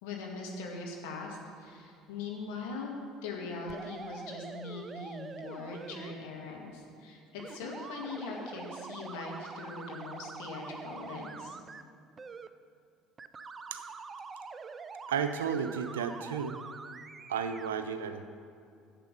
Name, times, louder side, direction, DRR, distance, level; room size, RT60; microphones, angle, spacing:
voice 1, 0.0-2.9 3.2-11.6, left 3 dB, 65° left, -1 dB, 2.1 m, -41 dB
sound 1, 3.7-6.1 7.4-11.8 12.2-12.5 13.2-17.7, right 5 dB, 30° right, 0.5 m, -45 dB
voice 2, 15.1-16.6 17.3-18.3, right 7 dB, 75° right, 9 dB, 0.6 m, -33 dB
10.5 x 7.5 x 5.5 m, 2.5 s
figure-of-eight pair, 60°, 0 cm